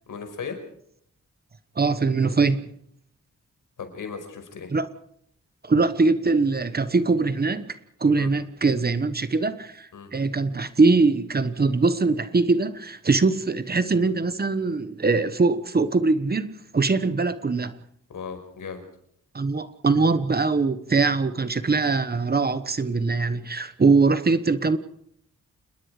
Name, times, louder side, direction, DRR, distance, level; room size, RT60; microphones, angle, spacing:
voice 1, 0.1-0.6 3.8-4.7 8.2-8.3 9.9-10.1 18.1-18.8, left 6 dB, 90° left, 5.4 m, -36 dB
voice 2, 1.8-2.7 4.7-4.9 5.6-17.7 19.3-24.8, right 3 dB, 30° right, 1.2 m, -22 dB
28.5 x 21.0 x 5.0 m
wide cardioid pair, 150°, 31 cm